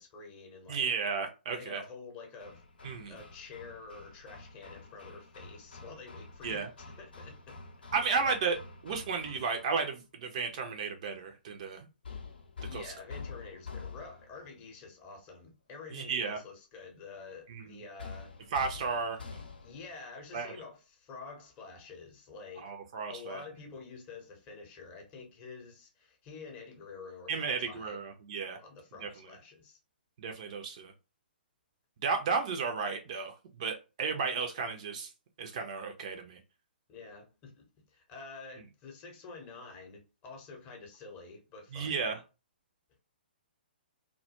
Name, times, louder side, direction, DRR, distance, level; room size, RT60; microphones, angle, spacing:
voice 1, 0.0-0.8 1.5-6.7 7.0-7.6 7.9-8.2 12.6-18.3 19.6-22.7 23.1-28.0 28.6-29.8 36.9-42.0, left 4 dB, 25° left, 0.7 m, -48 dB
voice 2, 0.7-1.8 2.8-3.2 6.4-6.7 7.9-8.6 8.8-11.9 12.7-12.9 15.9-16.4 17.5-17.8 18.5-19.2 20.3-20.5 22.6-23.4 27.3-28.6 29.0-29.1 30.2-30.9 32.0-33.3 33.6-35.1 35.4-36.4 41.7-42.2, right 5 dB, 40° right, 0.4 m, -33 dB
Hammer, 2.4-9.8 12.0-14.5 18.0-19.9, left 4 dB, 65° left, 0.5 m, -47 dB
2.2 x 2.0 x 2.8 m
figure-of-eight pair, 125°, 6 cm